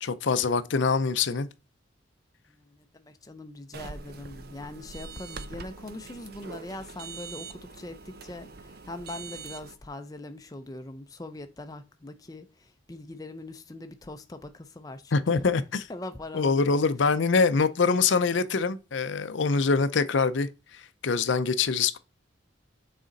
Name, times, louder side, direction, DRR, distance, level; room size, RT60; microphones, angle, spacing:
voice 1, 0.0-1.5 15.1-15.9 16.3-20.5 21.0-22.0, left 4 dB, 70° left, 0.5 m, -24 dB
voice 2, 2.5-15.5 15.9-16.8, left 2 dB, 20° left, 0.5 m, -42 dB
sound 1, 3.7-9.8, right 4 dB, 50° right, 0.5 m, -43 dB
6.3 x 4.2 x 3.9 m
head